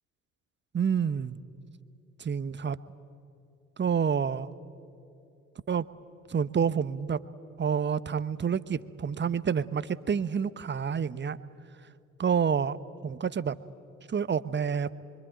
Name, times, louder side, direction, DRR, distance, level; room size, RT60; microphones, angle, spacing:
voice 1, 0.7-1.4 2.2-2.8 3.8-4.5 5.7-5.8 6.3-7.2 7.6-11.4 12.2-12.8 13.0-13.5 14.1-14.9, right 7 dB, 30° right, 15 dB, 1.0 m, -28 dB
26.0 x 24.0 x 9.0 m, 2.6 s
figure-of-eight pair, 50°, 39 cm